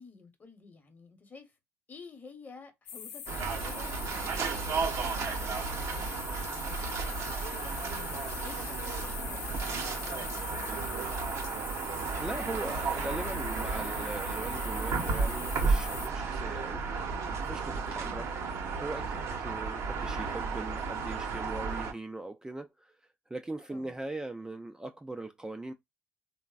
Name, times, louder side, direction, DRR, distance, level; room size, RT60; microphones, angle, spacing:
voice 1, 0.0-1.5 1.9-6.8 7.6-9.5 9.9-11.2 18.0-18.3 23.7-23.9, left 4 dB, 30° left, 0.9 m, -52 dB
sound 1, 2.9-16.1, left 7 dB, 85° left, 0.5 m, -42 dB
sound 2, 3.3-21.9, right 4 dB, 60° right, 0.7 m, -33 dB
voice 2, 12.1-16.8 17.4-18.3 18.8-22.9 23.3-25.7, right 2 dB, 10° right, 0.3 m, -40 dB
3.1 x 2.0 x 2.4 m
supercardioid pair, 65°, 6 cm